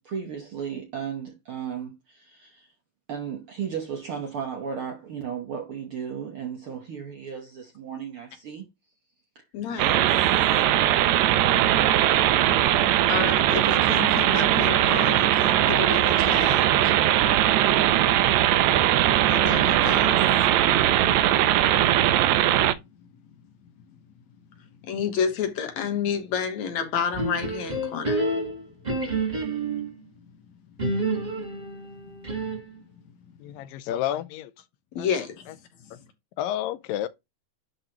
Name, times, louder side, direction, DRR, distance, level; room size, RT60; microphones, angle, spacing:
voice 1, 0.0-2.7 3.1-8.7 9.3-9.4, right 7 dB, 60° right, 1.4 m, -35 dB
voice 2, 9.5-10.1 13.1-16.9 19.3-20.2 24.8-28.3 35.0-35.5, left 7 dB, 65° left, 2.3 m, -30 dB
sound 1, 9.8-22.7, right 12 dB, 80° right, 1.7 m, -20 dB
sound 2, 27.1-29.9 30.8-32.8, right 2 dB, 40° right, 0.6 m, -28 dB
voice 3, 33.4-34.5 35.0-35.6 35.9-36.0 36.4-37.1, left 12 dB, 90° left, 2.4 m, -31 dB
11.0 x 3.8 x 3.0 m
omnidirectional pair, 3.9 m